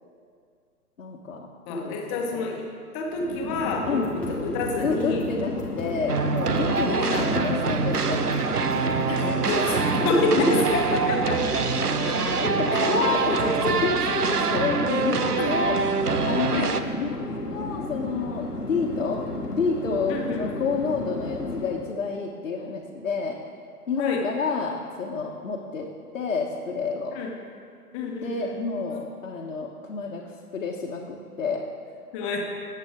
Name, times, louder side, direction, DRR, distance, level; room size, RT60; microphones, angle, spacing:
voice 1, 1.0-2.5 3.8-4.2 4.8-7.0 7.3-8.5 8.8-9.3 10.9-11.4 12.4-15.8 16.2-16.7 17.0-19.2 19.5-23.4 23.9-27.2 28.1-30.2 30.5-31.6, left 4 dB, 60° left, -3 dB, 1.4 m, -29 dB
voice 2, 1.6-2.7 2.9-5.2 6.9-7.5 9.2-11.3 12.0-12.4 13.0-13.4 15.4-15.5 16.5-16.7 20.1-20.5 24.0-24.2 27.1-27.3 27.9-28.5 32.1-32.4, left 2 dB, 20° left, 0 dB, 1.3 m, -28 dB
Chatter / Fixed-wing aircraft airplane, 3.1-22.0, left 2 dB, 85° left, 1.5 m, -33 dB
sound 1, 3.8-10.0, equal, 5° left, 0.8 m, -41 dB
sound 2, 6.1-16.8, right 5 dB, 80° right, 0.8 m, -25 dB
19.5 x 8.1 x 3.8 m, 2.2 s
figure-of-eight pair, 125°, 46 cm